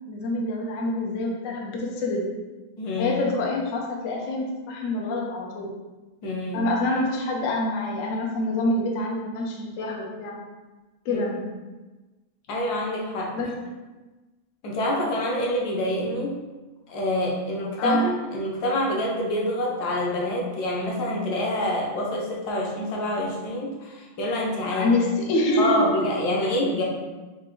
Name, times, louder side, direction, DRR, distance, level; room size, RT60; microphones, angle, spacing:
voice 1, 0.1-2.3 3.0-5.7 6.5-10.4 11.0-11.5 13.3-13.7 17.8-18.1 24.7-26.0, left 1 dB, 90° left, -1 dB, 0.7 m, -26 dB
voice 2, 2.8-3.2 6.2-6.7 11.1-11.2 12.5-13.4 14.6-16.4 16.9-24.9 25.6-26.8, left 1 dB, 65° left, -2 dB, 1.1 m, -26 dB
4.7 x 2.4 x 3.7 m, 1.2 s
omnidirectional pair, 2.3 m